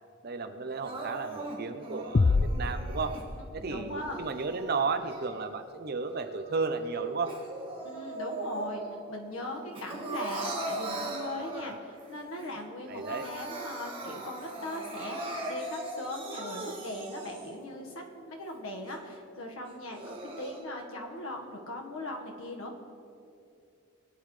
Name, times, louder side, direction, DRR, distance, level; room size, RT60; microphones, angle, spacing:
voice 1, 0.2-3.2 3.5-7.3 12.4-12.5 12.9-13.3, right 4 dB, 50° right, 8 dB, 0.7 m, -33 dB
Crying sobbing, 0.8-3.2 3.9-5.7 6.1-9.0 9.3-12.0 12.4-12.5 12.8-17.7 18.2-18.3 18.8-18.9 19.7-20.6, right 2 dB, 25° right, 1.9 m, -40 dB
sound 1, 2.1-3.9, left 3 dB, 40° left, 0.4 m, -27 dB
voice 2, 3.6-4.2 7.8-8.8 9.1-22.8, left 1 dB, 85° left, 1 dB, 1.6 m, -39 dB
20.5 x 9.5 x 3.3 m, 2.6 s
head